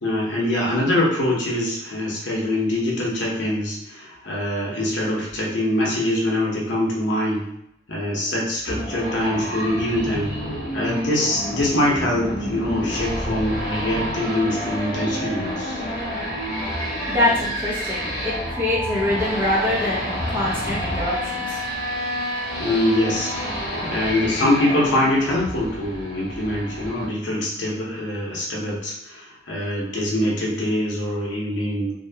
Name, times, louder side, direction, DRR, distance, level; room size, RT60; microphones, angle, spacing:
voice 1, 0.0-7.5 7.9-10.4 10.7-15.8 22.6-31.9, left 1 dB, 70° left, -4 dB, 0.8 m, -24 dB
sound 1, 8.7-27.0, equal, 40° left, 0.9 m, -29 dB
voice 2, 17.1-21.6, left 1 dB, 10° right, -7 dB, 0.6 m, -24 dB
2.7 x 2.2 x 2.7 m, 0.76 s
head